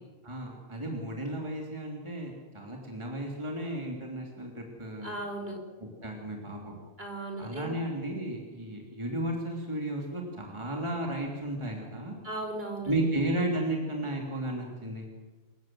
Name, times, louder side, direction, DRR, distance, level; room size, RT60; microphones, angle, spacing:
voice 1, 0.2-5.2 5.8-6.8 7.4-12.1 12.9-15.1, right 1 dB, 20° right, 0 dB, 3.4 m, -34 dB
voice 2, 5.0-5.6 7.0-7.7 12.2-13.1, right 2 dB, 50° right, 1 dB, 5.5 m, -36 dB
27.5 x 15.5 x 7.7 m, 1.3 s
omnidirectional pair, 1.3 m